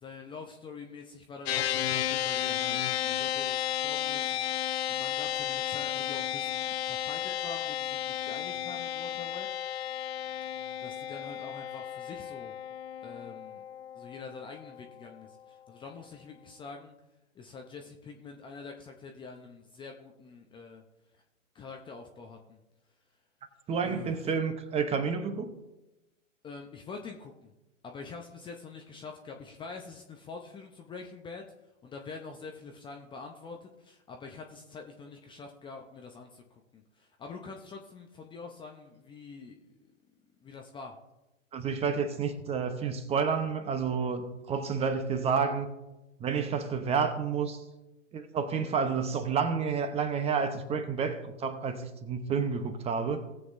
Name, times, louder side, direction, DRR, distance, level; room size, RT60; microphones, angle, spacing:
voice 1, 0.0-4.3 4.9-9.5 10.8-12.5 13.0-13.6 13.9-16.9 17.3-20.8 21.5-22.6 23.8-24.5 26.4-27.5 27.8-31.4 31.8-39.9 40.4-40.9, left 4 dB, 10° left, 2 dB, 0.7 m, -45 dB
sound 1, 1.5-15.0, left 11 dB, 50° left, 0.7 m, -33 dB
voice 2, 23.7-25.5 41.5-45.7 46.2-47.6 48.1-53.2, right 6 dB, 15° right, 8 dB, 0.9 m, -30 dB
18.5 x 7.8 x 2.6 m, 0.98 s
hypercardioid pair, 120°, 39 cm